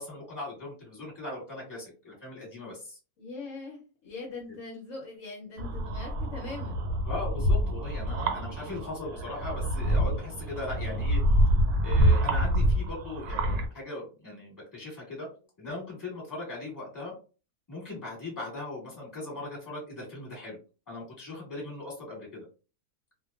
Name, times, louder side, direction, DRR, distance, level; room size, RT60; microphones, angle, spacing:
voice 1, 0.0-3.0 7.0-11.2 11.8-15.3 15.6-17.1 17.7-20.6 20.9-22.4, left 2 dB, 15° left, -4 dB, 1.2 m, -39 dB
voice 2, 3.2-6.8, left 3 dB, 65° left, -1 dB, 1.0 m, -41 dB
sound 1, 5.6-13.7, equal, 85° right, 1.1 m, -26 dB
2.5 x 2.2 x 2.4 m, 0.35 s
omnidirectional pair, 1.6 m